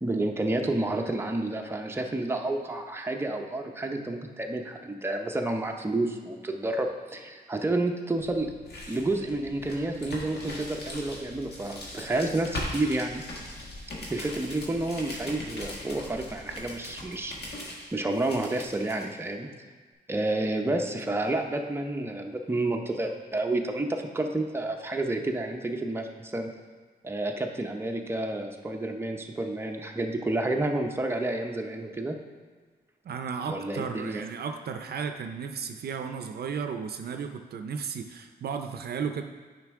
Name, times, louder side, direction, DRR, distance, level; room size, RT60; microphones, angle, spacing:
voice 1, 0.0-8.5 8.9-13.2 14.1-17.3 17.9-19.5 20.1-26.5 27.0-32.2 33.5-34.2, right 2 dB, 15° right, 2 dB, 0.6 m, -30 dB
sound 1, 8.2-19.0, left 1 dB, 75° left, 1.5 m, -40 dB
voice 2, 33.0-39.2, right 6 dB, 70° right, 6 dB, 0.5 m, -34 dB
9.2 x 5.2 x 3.6 m, 1.5 s
wide cardioid pair, 110°, 17 cm